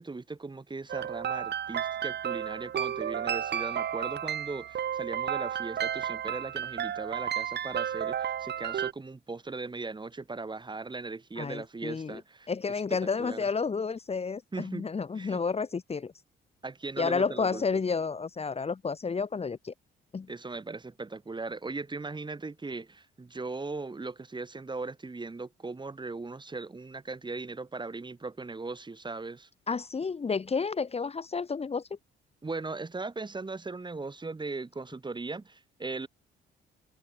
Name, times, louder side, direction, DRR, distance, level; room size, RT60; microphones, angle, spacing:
voice 1, 0.0-12.5 12.9-13.5 14.5-14.9 15.1-15.4 16.6-17.8 20.3-29.5 32.4-36.1, right 3 dB, 25° right, 4.1 m, -38 dB
sound 1, 0.9-8.9, right 9 dB, 60° right, 2.0 m, -32 dB
voice 2, 11.4-12.2 12.5-16.1 17.0-19.7 20.1-20.3 29.7-31.9, left 5 dB, 30° left, 1.5 m, -31 dB
cardioid pair, 90°, 20 cm